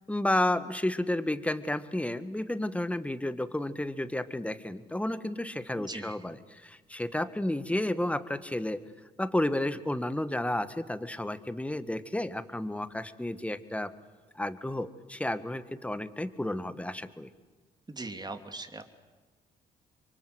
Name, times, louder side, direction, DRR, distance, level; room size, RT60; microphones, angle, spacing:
voice 1, 0.1-8.8 9.2-13.9 14.3-17.3, left 1 dB, 5° left, 12 dB, 1.7 m, -31 dB
voice 2, 5.8-6.2 17.9-18.8, right 2 dB, 25° right, 7 dB, 2.9 m, -40 dB
27.0 x 24.0 x 8.2 m, 1.3 s
supercardioid pair, 65°, 18 cm